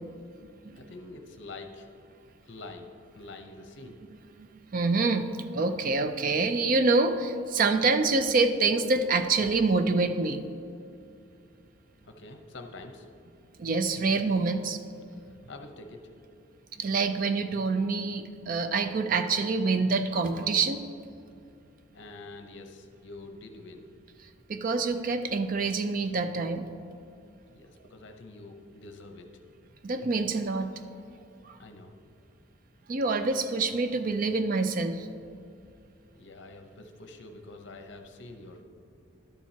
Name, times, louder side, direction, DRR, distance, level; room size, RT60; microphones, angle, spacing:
voice 1, 0.7-1.9 2.4-4.0 12.0-13.1 15.2-16.2 21.9-23.9 27.5-29.3 31.6-31.9 36.1-38.6, left 2 dB, 60° left, 5 dB, 0.7 m, -46 dB
voice 2, 4.7-5.3 5.5-10.6 13.6-14.8 16.8-20.8 24.5-26.7 29.8-30.7 31.4-31.6 32.9-35.1, right 3 dB, 45° right, 8 dB, 0.4 m, -26 dB
12.0 x 7.3 x 2.8 m, 2.5 s
head